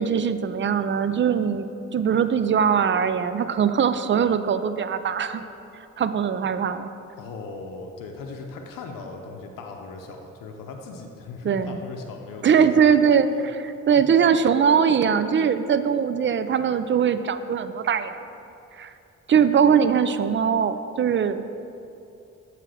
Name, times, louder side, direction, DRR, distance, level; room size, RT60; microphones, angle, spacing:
voice 1, 0.0-1.7 1.9-5.4 6.0-6.9 11.4-11.8 12.4-18.1 18.8-18.9 19.3-21.5, right 7 dB, 35° right, 11 dB, 0.4 m, -21 dB
voice 2, 7.2-12.9 13.9-14.0, left 4 dB, 85° left, 3 dB, 0.7 m, -38 dB
7.5 x 3.3 x 6.1 m, 2.7 s
supercardioid pair, 50°, 32 cm